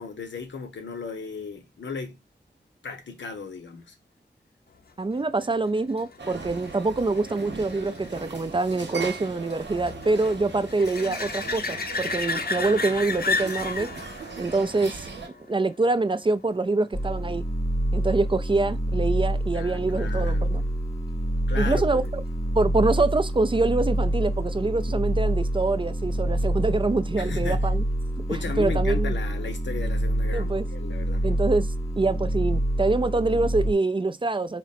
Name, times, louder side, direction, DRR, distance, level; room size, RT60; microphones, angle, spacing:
voice 1, 0.0-2.2 2.8-3.9 19.5-20.6 21.5-22.2 27.2-27.7 28.3-31.3, left 5 dB, 85° left, 0.8 m, -36 dB
voice 2, 5.0-13.9 14.4-15.1 15.5-17.4 17.9-20.6 21.6-22.0 22.5-27.8 28.6-29.1 30.3-30.7 31.2-34.6, right 3 dB, 30° right, 0.4 m, -25 dB
sound 1, 5.1-16.4 22.1-22.2, left 4 dB, 55° left, 0.6 m, -34 dB
sound 2, 6.2-15.3, right 4 dB, 90° right, 0.9 m, -39 dB
sound 3, 16.9-33.7, right 1 dB, 15° left, 0.7 m, -27 dB
3.9 x 2.1 x 4.1 m
cardioid pair, 45°, 18 cm